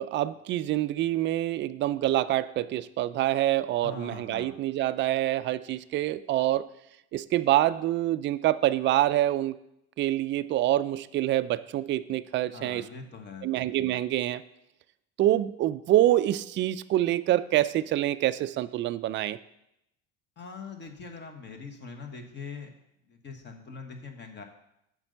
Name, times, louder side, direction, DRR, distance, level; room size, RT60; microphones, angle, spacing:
voice 1, 0.0-6.7 7.1-9.6 10.0-12.8 13.4-14.4 15.2-19.4, right 14 dB, 35° right, 13 dB, 0.4 m, -26 dB
voice 2, 3.8-4.6 12.5-13.5 20.4-22.7 23.1-24.4, left 4 dB, 30° left, 5 dB, 1.4 m, -42 dB
7.2 x 5.3 x 6.7 m, 0.83 s
supercardioid pair, 105°, 34 cm